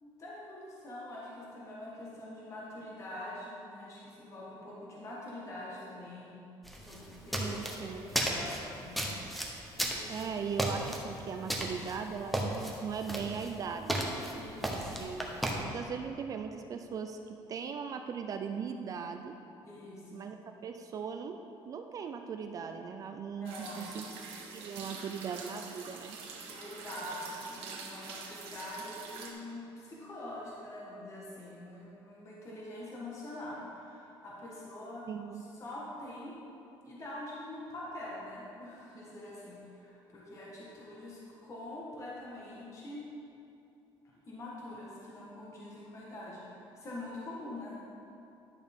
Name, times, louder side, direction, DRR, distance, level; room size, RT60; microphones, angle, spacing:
voice 1, 0.0-6.4 6.8-9.2 9.8-10.3 14.3-15.1 19.6-20.3 23.4-23.9 26.5-35.1 35.3-36.4 36.8-43.1 44.3-47.8, left 1 dB, 30° left, -6 dB, 1.4 m, -45 dB
sound 1, 6.6-15.6, right 1 dB, ahead, 0.8 m, -35 dB
voice 2, 7.4-8.0 10.1-14.1 14.7-15.3 15.6-19.4 20.1-20.4 20.6-21.4 21.7-24.1 24.5-26.2 35.1-35.4, right 6 dB, 40° right, 6 dB, 0.4 m, -39 dB
sound 2, 23.4-29.3, right 4 dB, 85° right, 1.2 m, -45 dB
11.0 x 6.4 x 3.6 m, 2.7 s
cardioid pair, 155°, 10 cm